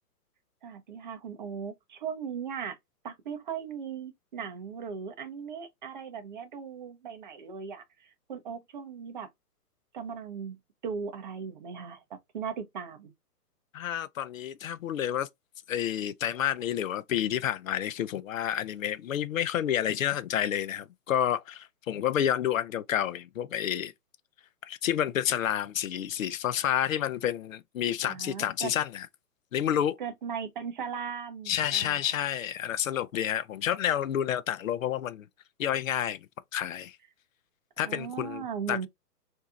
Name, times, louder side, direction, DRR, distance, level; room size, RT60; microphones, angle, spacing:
voice 1, 0.6-2.8 3.0-9.3 9.9-13.1 28.0-28.7 30.0-32.2 37.8-38.9, right 6 dB, 30° right, 0.6 m, -38 dB
voice 2, 13.7-15.3 15.7-23.9 24.6-29.1 29.5-30.0 31.5-35.3 35.6-36.3 36.5-37.0 37.8-38.8, left 10 dB, 60° left, 0.5 m, -29 dB
4.0 x 2.7 x 2.3 m
hypercardioid pair, 150°, 47 cm